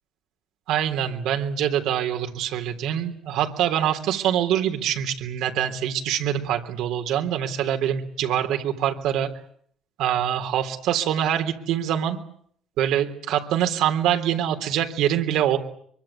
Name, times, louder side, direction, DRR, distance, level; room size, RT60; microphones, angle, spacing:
voice 1, 0.7-9.3 10.0-12.2 12.8-15.6, right 10 dB, 75° right, 5 dB, 3.6 m, -24 dB
24.0 x 23.5 x 8.6 m, 0.63 s
cardioid pair, 100°, 0 cm